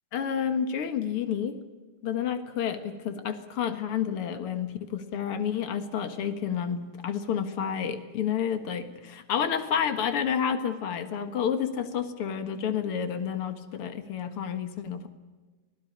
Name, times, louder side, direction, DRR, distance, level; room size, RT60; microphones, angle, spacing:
voice 1, 0.1-1.6 2.0-15.1, left 8 dB, 55° left, 9 dB, 1.7 m, -30 dB
25.5 x 17.0 x 8.7 m, 1.3 s
omnidirectional pair, 4.4 m